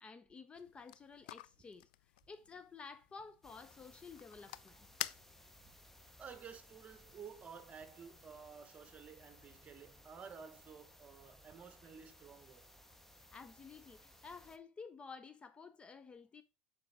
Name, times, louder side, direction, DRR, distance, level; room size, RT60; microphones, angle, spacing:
voice 1, 0.0-1.9 2.3-4.9 13.2-16.4, left 5 dB, 25° left, 0.5 m, -53 dB
sound 1, 0.5-5.7, left 15 dB, 85° left, 0.3 m, -49 dB
sound 2, 3.4-14.6, left 1 dB, 5° left, 0.9 m, -62 dB
voice 2, 6.2-12.7, right 6 dB, 30° right, 1.2 m, -53 dB
7.5 x 5.2 x 3.5 m
supercardioid pair, 110°, 5 cm